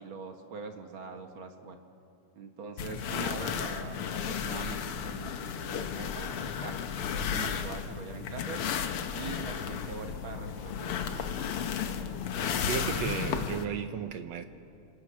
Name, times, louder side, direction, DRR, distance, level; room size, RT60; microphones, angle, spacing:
voice 1, 0.0-1.8 2.3-6.3 6.6-6.8 7.1-8.6 9.1-11.0, right 5 dB, 50° right, 1.7 m, -43 dB
sound 1, 2.8-13.7, left 7 dB, 80° left, 1.2 m, -34 dB
voice 2, 12.7-14.5, right 8 dB, 70° right, 1.7 m, -34 dB
30.0 x 27.0 x 6.3 m
omnidirectional pair, 4.0 m